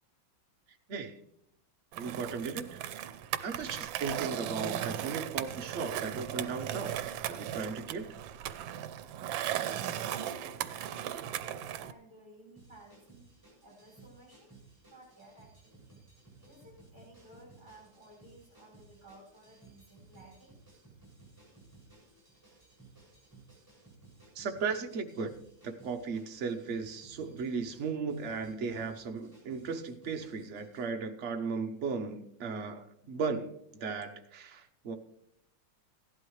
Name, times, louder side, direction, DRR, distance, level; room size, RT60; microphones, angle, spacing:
Skateboard, 1.9-11.9, right 11 dB, 85° right, 1.4 m, -37 dB
voice 1, 2.0-2.8 3.4-6.9 7.3-8.1 24.3-25.3 25.6-33.5 33.8-34.9, right 5 dB, 50° right, 5 dB, 1.0 m, -36 dB
voice 2, 9.4-13.3 13.6-14.5 14.9-15.8 16.4-20.6, right 1 dB, 25° right, -3 dB, 6.5 m, -55 dB
sound 1, 12.6-30.9, right 3 dB, 10° right, 6.2 m, -58 dB
16.0 x 11.5 x 3.2 m, 0.75 s
omnidirectional pair, 2.1 m